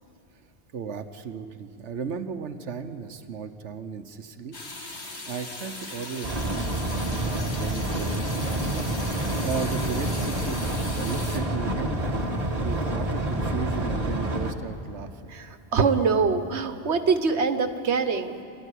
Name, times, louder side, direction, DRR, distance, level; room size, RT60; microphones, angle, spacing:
voice 1, 0.7-4.6 4.8-12.0 12.5-15.3, right 6 dB, 90° right, 8 dB, 1.3 m, -36 dB
sound 1, 4.5-11.4, left 2 dB, 70° left, 2.4 m, -38 dB
sound 2, 6.2-14.5, right 1 dB, 35° right, 1.7 m, -28 dB
voice 2, 15.3-18.4, right 5 dB, 75° right, 8 dB, 1.5 m, -24 dB
28.0 x 14.0 x 10.0 m, 2.6 s
omnidirectional pair, 1.2 m